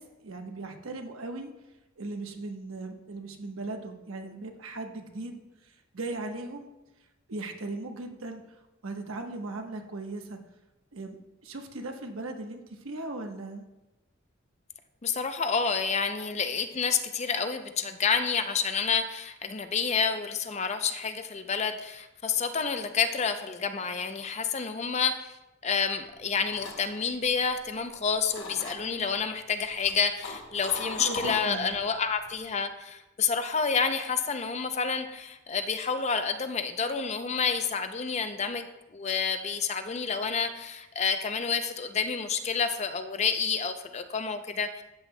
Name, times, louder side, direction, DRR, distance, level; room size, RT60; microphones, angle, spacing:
voice 1, 0.0-1.5 2.0-6.7 7.3-8.4 8.8-10.4 10.9-13.6 31.0-31.7, right 2 dB, 90° right, 4 dB, 1.1 m, -38 dB
voice 2, 15.0-25.3 25.6-38.7 38.9-44.8, left 5 dB, 35° left, 8 dB, 0.5 m, -29 dB
sound 1, 26.1-28.0 28.3-29.0 29.6-31.9 32.2-32.5, left 3 dB, 75° left, 1.1 m, -39 dB
13.0 x 7.9 x 2.2 m, 0.98 s
head